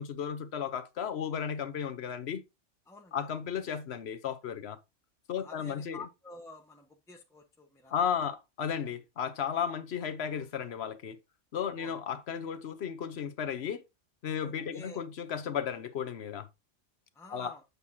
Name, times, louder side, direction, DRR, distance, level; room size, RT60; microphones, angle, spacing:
voice 1, 0.0-2.4 3.1-4.8 5.3-6.0 7.9-11.2 11.5-13.8 14.2-16.5 17.3-17.5, left 8 dB, 60° left, 1.1 m, -34 dB
voice 2, 2.9-3.4 5.4-8.3 11.8-11.9 14.4-15.0 17.1-17.6, left 3 dB, 5° left, 1.0 m, -50 dB
7.9 x 6.9 x 2.7 m
omnidirectional pair, 1.3 m